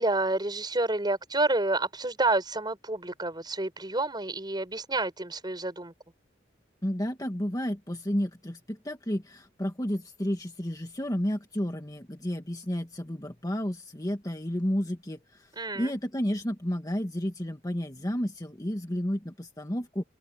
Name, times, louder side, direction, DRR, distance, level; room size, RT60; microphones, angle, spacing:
voice 1, 0.0-5.9 15.6-15.9, right 2 dB, 25° right, 5.9 m, -29 dB
voice 2, 6.8-20.0, equal, 20° left, 1.7 m, -31 dB
open air
head